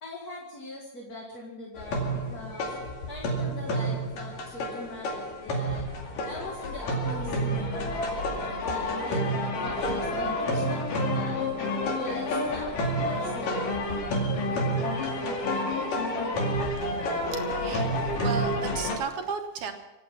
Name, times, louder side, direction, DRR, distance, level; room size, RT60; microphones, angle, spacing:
voice 1, 0.0-2.7 3.1-5.9 6.2-11.4 12.0-13.6, left 2 dB, 30° left, -2 dB, 2.0 m, -42 dB
sound 1, 1.8-19.0, equal, 70° left, 3.9 m, -29 dB
voice 2, 17.3-17.9 18.2-19.7, right 5 dB, 65° right, 4 dB, 2.5 m, -34 dB
25.5 x 9.1 x 5.8 m, 0.98 s
omnidirectional pair, 4.1 m